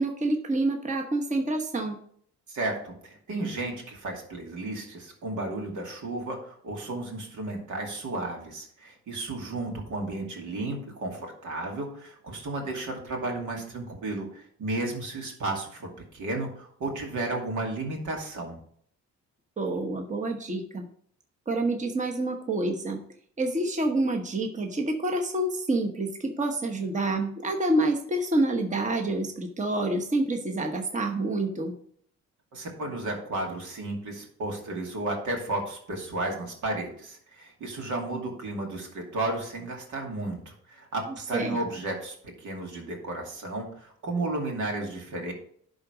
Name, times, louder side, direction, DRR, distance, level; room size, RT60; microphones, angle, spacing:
voice 1, 0.0-2.0 19.6-20.9 21.5-23.0 23.4-31.7 41.3-41.6, right 2 dB, 25° right, 3 dB, 1.1 m, -27 dB
voice 2, 2.5-18.6 32.5-45.3, right 2 dB, 75° right, 1 dB, 2.5 m, -33 dB
11.0 x 3.9 x 5.1 m, 0.62 s
cardioid pair, 90°, 30 cm